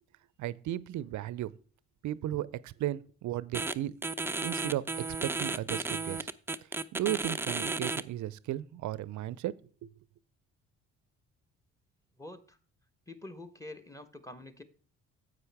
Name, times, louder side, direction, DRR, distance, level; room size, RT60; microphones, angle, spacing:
voice 1, 0.4-1.5 2.0-3.9 4.4-6.3 6.9-9.5 9.8-9.9, right 13 dB, 50° right, 0.6 m, -35 dB
sound 1, 3.5-3.7 4.0-8.0, right 3 dB, 5° right, 0.5 m, -33 dB
voice 2, 12.2-12.6 13.1-14.6, left 2 dB, 10° left, 1.2 m, -46 dB
9.8 x 7.9 x 3.5 m
hypercardioid pair, 50°, 37 cm